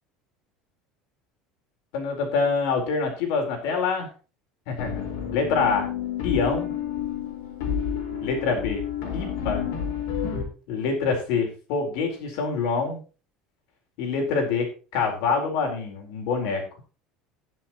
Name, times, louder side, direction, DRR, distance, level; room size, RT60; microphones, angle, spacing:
voice 1, 1.9-4.1 4.7-5.1 5.3-5.9 6.2-6.7 8.2-8.8 9.1-9.7 10.7-13.0 14.0-16.6, left 4 dB, 60° left, 2 dB, 4.4 m, -26 dB
sound 1, 4.8-10.4, left 8 dB, 85° left, 4.7 m, -30 dB
20.5 x 7.5 x 3.1 m, 0.35 s
cardioid pair, 180°, 0 cm